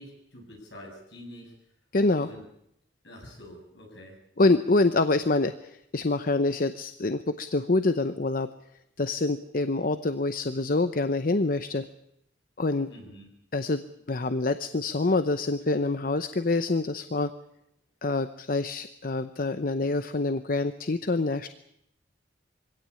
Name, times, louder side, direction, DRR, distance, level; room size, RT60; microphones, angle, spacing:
voice 1, 0.0-1.5 2.1-2.4 3.0-4.2 12.9-13.3, equal, 70° left, 1 dB, 7.9 m, -46 dB
voice 2, 1.9-2.3 4.4-8.5 9.0-11.9 12.6-12.9 13.5-13.8 14.1-17.3 18.0-21.5, left 2 dB, 50° left, 10 dB, 0.8 m, -26 dB
23.5 x 17.0 x 8.5 m, 0.77 s
head